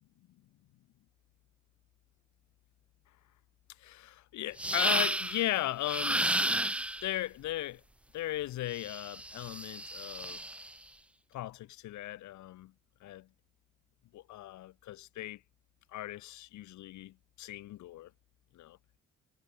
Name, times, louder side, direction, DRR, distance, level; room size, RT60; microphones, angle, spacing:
voice 1, 3.8-6.2 7.0-7.8 8.1-10.4 11.3-12.7 13.0-13.2 14.1-15.4 15.9-17.1 17.4-18.1 18.6-18.8, left 15 dB, 70° left, 0.7 m, -37 dB
sound 1, 4.6-5.5 5.8-7.1 8.8-10.7, right 1 dB, 5° right, 0.4 m, -32 dB
cardioid pair, 90°, 30 cm